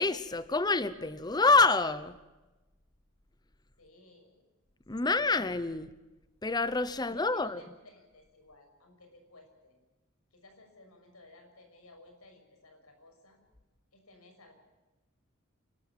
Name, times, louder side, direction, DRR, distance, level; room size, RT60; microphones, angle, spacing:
voice 1, 0.0-2.2 4.9-5.9 6.4-7.6, left 3 dB, 20° left, 14 dB, 0.8 m, -27 dB
voice 2, 3.8-4.4 5.0-5.3 7.0-9.8 10.3-13.4 13.9-14.5, left 2 dB, 85° left, 5 dB, 6.2 m, -57 dB
28.0 x 13.5 x 8.9 m, 1.1 s
head